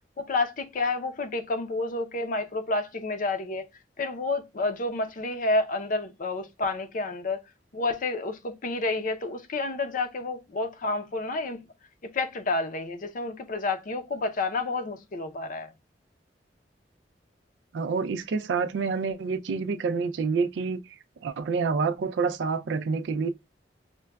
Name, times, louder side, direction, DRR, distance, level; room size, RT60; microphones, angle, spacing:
voice 1, 0.2-3.6 4.0-7.4 7.7-11.6 12.1-15.7, left 3 dB, 50° left, 0.6 m, -29 dB
voice 2, 17.7-20.8 21.2-23.3, right 5 dB, 80° right, 0.3 m, -27 dB
5.8 x 2.2 x 2.2 m
head